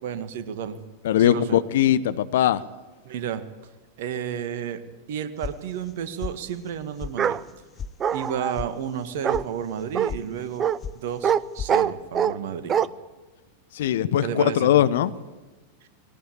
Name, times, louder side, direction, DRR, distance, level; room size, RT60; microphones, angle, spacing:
voice 1, 0.0-0.8 1.2-1.6 3.0-3.4 4.0-4.8 5.1-7.4 8.1-10.7 10.9-12.7 14.2-14.7, right 8 dB, 55° right, 10 dB, 1.9 m, -31 dB
voice 2, 1.0-2.6 13.7-15.1, left 11 dB, 55° left, 14 dB, 1.0 m, -20 dB
sound 1, 5.4-5.9 6.2-6.7 7.0-7.1 7.5-7.9 8.2-8.7 9.0-9.4 9.8-10.2 10.5-11.0 11.2-11.7, left 6 dB, 25° left, 0.9 m, -35 dB
Bark, 7.2-7.4 8.0-8.6 9.2-9.4 9.9-10.1 10.6-10.8 11.2-11.4 11.7-12.4 12.7-12.9, right 8 dB, 25° right, 0.7 m, -23 dB
20.0 x 18.0 x 8.7 m, 1.2 s
figure-of-eight pair, 90°, 0 cm